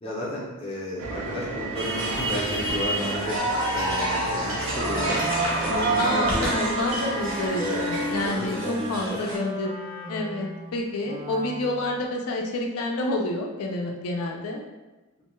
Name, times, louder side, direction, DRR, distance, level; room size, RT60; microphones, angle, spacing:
voice 1, 0.0-6.5 7.6-7.8 8.1-9.2, left 1 dB, 25° left, -5 dB, 0.5 m, -33 dB
sound 1, 1.0-8.3, right 2 dB, 85° right, 0.4 m, -34 dB
sound 2, 1.8-9.4, right 2 dB, 60° right, 0.8 m, -28 dB
Wind instrument woodwind instrument, 4.5-11.9, left 1 dB, 25° right, 0.4 m, -35 dB
voice 2, 6.0-9.7 10.1-14.6, left 2 dB, 85° left, 0 dB, 0.4 m, -29 dB
2.6 x 2.2 x 3.0 m, 1.1 s
head